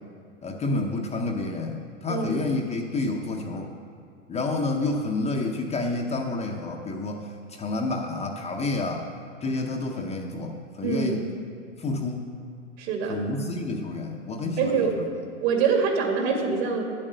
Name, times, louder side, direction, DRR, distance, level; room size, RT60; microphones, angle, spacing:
voice 1, 0.4-3.7 4.3-9.1 9.4-11.2 11.8-12.3 13.1-15.1, left 2 dB, 15° left, 2 dB, 0.7 m, -29 dB
voice 2, 2.1-2.4 10.8-11.2 12.8-13.2 14.6-15.0 15.4-16.8, right 5 dB, 55° right, 2 dB, 2.3 m, -25 dB
9.6 x 7.5 x 6.6 m, 2.4 s
hypercardioid pair, 120°, 38 cm